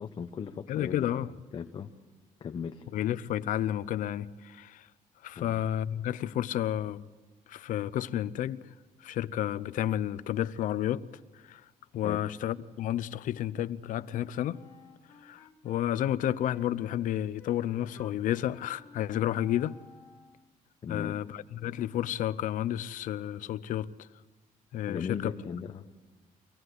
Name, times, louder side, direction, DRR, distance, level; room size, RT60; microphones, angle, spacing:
voice 1, 0.0-1.9 2.4-2.9 5.3-5.6 12.0-12.2 20.8-21.2 24.9-25.9, left 6 dB, 35° left, 0.8 m, -38 dB
voice 2, 0.7-1.3 2.9-4.9 5.2-7.0 7.5-8.6 9.0-11.1 11.4-11.6 11.9-14.6 15.2-19.8 20.9-24.1 24.7-25.3, left 12 dB, 70° left, 0.7 m, -31 dB
Wind instrument woodwind instrument, 14.5-20.5, left 4 dB, 20° left, 2.2 m, -56 dB
24.0 x 18.0 x 8.0 m
cardioid pair, 160°, 14 cm